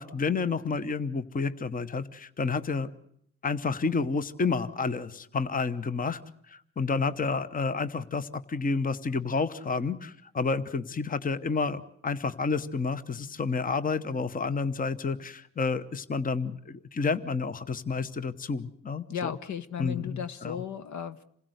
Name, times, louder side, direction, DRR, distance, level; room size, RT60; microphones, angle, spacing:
voice 1, 0.0-2.9 3.4-6.2 6.5-19.3 19.8-20.6, left 4 dB, 25° left, 13 dB, 1.0 m, -30 dB
voice 2, 19.1-21.2, left 8 dB, 55° left, 13 dB, 1.1 m, -35 dB
27.0 x 16.0 x 8.0 m, 0.68 s
supercardioid pair, 85°, 35 cm